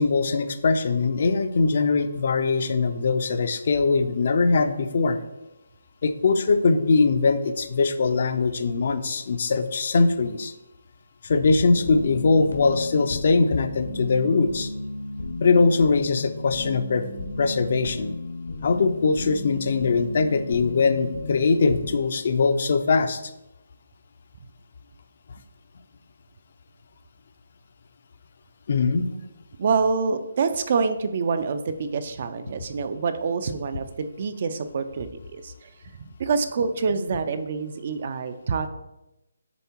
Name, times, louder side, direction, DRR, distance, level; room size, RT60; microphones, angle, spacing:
voice 1, 0.0-5.2 6.0-10.5 11.2-14.7 15.4-17.1 17.4-18.1 18.6-23.2 28.7-29.0, left 4 dB, 45° left, 9 dB, 0.5 m, -21 dB
sound 1, 11.6-22.0, left 2 dB, 80° left, 1.2 m, -35 dB
voice 2, 29.6-35.7 36.0-38.7, right 5 dB, 40° right, 10 dB, 0.5 m, -26 dB
7.0 x 3.6 x 4.5 m, 0.93 s
hypercardioid pair, 165°, 0 cm